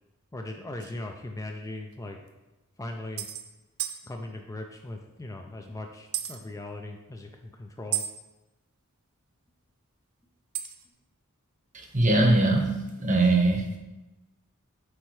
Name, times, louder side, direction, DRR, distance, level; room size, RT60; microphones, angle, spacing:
voice 1, 0.3-2.2 2.8-3.3 4.1-8.0, left 2 dB, 15° left, 3 dB, 0.4 m, -39 dB
sound 1, 0.8-0.9 1.9-2.0 2.3-2.4 3.2-3.4 3.8-4.0 6.1-6.4 7.9-8.1 10.5-10.8, right 12 dB, 80° right, 0.6 m, -32 dB
voice 2, 11.7-13.8, right 2 dB, 35° right, 2 dB, 0.9 m, -22 dB
8.0 x 4.2 x 3.2 m, 1.0 s
head